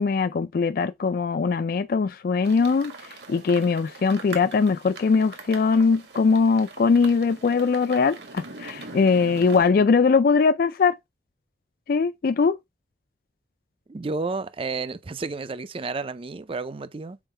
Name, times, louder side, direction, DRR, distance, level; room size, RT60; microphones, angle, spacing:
voice 1, 0.0-2.9 3.3-11.0 11.9-12.6, left 5 dB, 55° left, 0.3 m, -21 dB
sound 1, 2.4-9.6, right 3 dB, 70° right, 1.7 m, -42 dB
voice 2, 13.9-17.2, right 3 dB, 30° right, 0.5 m, -31 dB
7.1 x 4.4 x 3.3 m
head